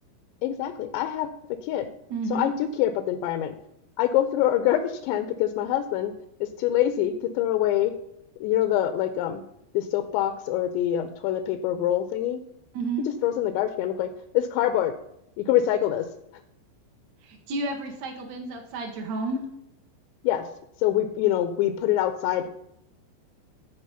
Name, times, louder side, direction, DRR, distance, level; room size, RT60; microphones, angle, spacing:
voice 1, 0.4-1.3 1.6-1.9 2.3-3.5 4.0-6.1 6.4-7.9 8.4-9.4 9.7-12.4 13.2-14.1 14.3-14.9 15.4-16.1 20.2-20.5 20.8-22.5, left 12 dB, 80° left, 10 dB, 2.7 m, -25 dB
voice 2, 2.1-2.5 12.7-13.1 17.2-19.4, right 2 dB, 80° right, 2 dB, 1.5 m, -31 dB
15.0 x 4.9 x 5.5 m, 0.81 s
omnidirectional pair, 5.3 m